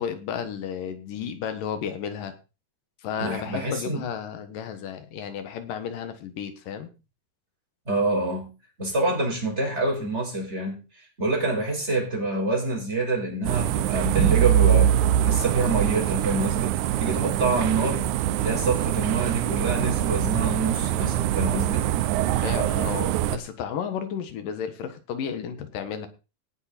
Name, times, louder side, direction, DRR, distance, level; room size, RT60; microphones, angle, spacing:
voice 1, 0.0-2.3 3.0-6.9 22.4-26.1, left 8 dB, 90° left, 3.2 m, -33 dB
voice 2, 3.2-4.0 7.9-8.5 8.8-10.8 11.2-16.8 17.0-18.1 18.4-21.9, right 2 dB, 20° right, 5.3 m, -27 dB
sound 1, 13.4-23.4, right 11 dB, 75° right, 2.0 m, -23 dB
17.5 x 7.0 x 4.4 m
omnidirectional pair, 3.7 m